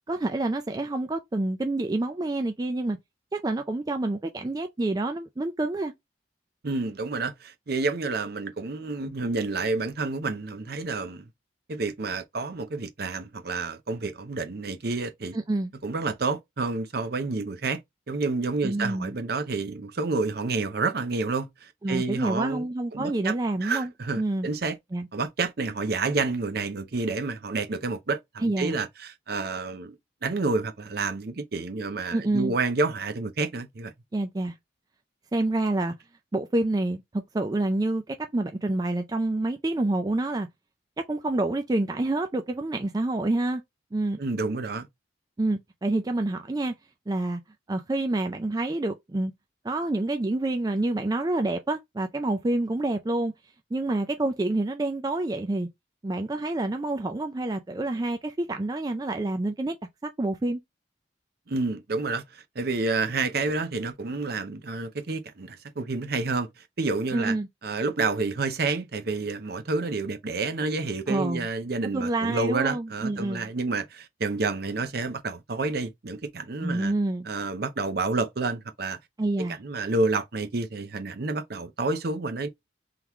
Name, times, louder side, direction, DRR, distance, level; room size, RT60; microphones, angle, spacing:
voice 1, 0.1-3.0 3.3-5.9 15.3-15.7 18.6-19.2 21.8-23.9 24.2-24.5 24.9-25.1 28.4-28.8 32.1-32.5 34.1-34.6 35.3-35.9 36.3-37.0 37.3-40.5 41.0-43.6 43.9-44.2 45.4-46.7 47.1-47.4 47.7-49.3 49.6-53.3 53.7-55.7 56.0-59.8 60.0-60.6 67.1-67.5 71.1-71.5 71.9-73.5 76.6-77.3 79.2-79.6, right 2 dB, 20° right, 0.3 m, -27 dB
voice 2, 6.6-11.3 11.7-15.4 15.8-17.8 18.1-22.7 22.9-23.3 23.6-24.8 25.1-30.0 30.2-33.9 44.2-44.9 61.5-66.5 66.8-67.4 67.6-76.9 77.3-79.0 79.4-82.5, right 3 dB, 55° right, 0.6 m, -29 dB
3.7 x 3.0 x 3.4 m
head